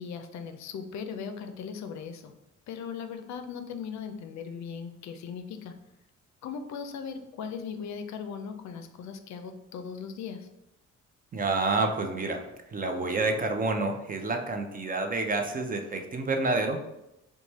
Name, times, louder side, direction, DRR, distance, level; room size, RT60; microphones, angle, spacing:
voice 1, 0.0-2.3 2.7-5.7 6.4-10.5, left 6 dB, 65° left, 7 dB, 0.5 m, -38 dB
voice 2, 11.3-16.8, right 3 dB, 30° right, 4 dB, 0.5 m, -29 dB
3.1 x 2.2 x 4.1 m, 0.89 s
cardioid pair, 90°, 30 cm